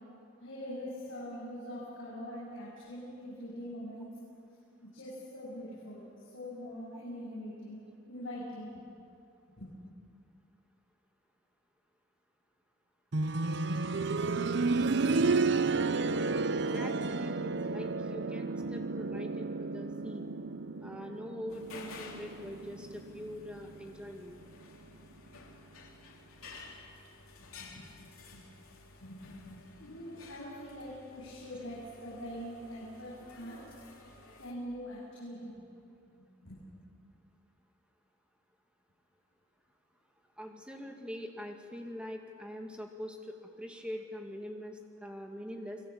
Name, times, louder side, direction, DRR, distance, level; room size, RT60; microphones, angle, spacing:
voice 1, 0.4-4.1 4.8-8.8 9.6-9.7 27.4-28.4 29.0-33.6 34.4-35.5 36.1-36.2 36.4-36.6, equal, 65° left, -8 dB, 7.9 m, -43 dB
sound 1, 13.1-23.9 25.3-25.4, right 3 dB, 55° right, 0.7 m, -32 dB
voice 2, 16.5-20.3 20.8-24.4 40.4-45.8, equal, 5° right, 2 dB, 2.1 m, -43 dB
sound 2, 21.5-34.5, left 3 dB, 90° left, 3.6 m, -53 dB
30.0 x 20.5 x 8.7 m, 2.6 s
head